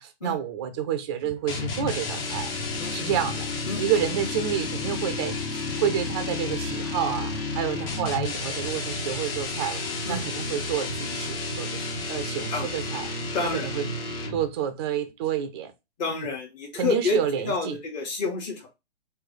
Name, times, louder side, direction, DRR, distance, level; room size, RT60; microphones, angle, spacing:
voice 1, 0.0-2.5 2.9-3.5 3.8-9.8 10.1-11.8 12.1-13.1 13.5-13.9 14.3-15.7 16.1-16.3 16.8-17.8, right 9 dB, 25° right, 0.4 m, -29 dB
sound 1, 1.5-14.6, left 3 dB, 55° left, 1.4 m, -31 dB
voice 2, 2.8-3.1 3.7-3.8 7.7-7.8 10.0-10.2 12.5-12.7 13.3-13.7 16.0-17.2 17.4-18.7, left 4 dB, 40° left, 1.2 m, -29 dB
3.2 x 2.7 x 3.7 m
hypercardioid pair, 130°, 35 cm